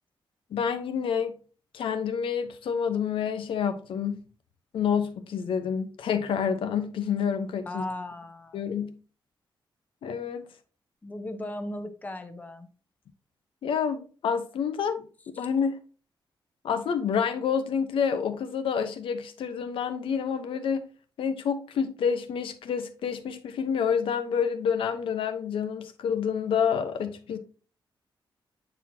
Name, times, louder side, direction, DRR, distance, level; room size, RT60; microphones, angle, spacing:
voice 1, 0.5-1.3 1.7-4.2 4.7-7.8 8.5-9.0 10.0-10.5 13.6-15.1 15.4-15.8 16.6-20.8 21.2-27.4, left 7 dB, 80° left, 0.9 m, -28 dB
voice 2, 7.6-8.7 11.0-12.7 15.3-15.5, left 1 dB, 20° left, 0.7 m, -37 dB
9.0 x 4.2 x 2.8 m
wide cardioid pair, 175°, 9 cm